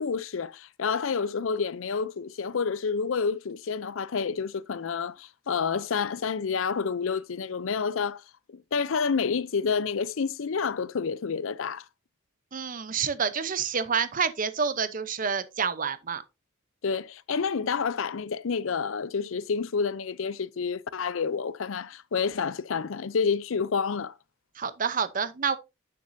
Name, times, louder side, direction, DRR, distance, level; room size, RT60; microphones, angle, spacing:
voice 1, 0.0-8.2 8.5-11.8 16.8-24.1, left 5 dB, 75° left, 0.5 m, -29 dB
voice 2, 12.5-16.2 24.6-25.6, right 6 dB, 40° right, 0.7 m, -28 dB
9.4 x 6.9 x 2.6 m
head